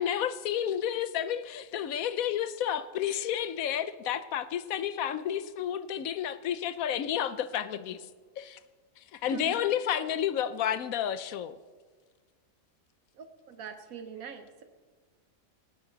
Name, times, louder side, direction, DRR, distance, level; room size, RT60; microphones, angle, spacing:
voice 1, 0.0-8.0 8.4-8.6 9.1-11.6, left 10 dB, 85° left, 13 dB, 1.1 m, -31 dB
voice 2, 13.1-14.6, right 5 dB, 85° right, 7 dB, 1.4 m, -42 dB
19.0 x 17.0 x 4.0 m, 1.5 s
omnidirectional pair, 1.4 m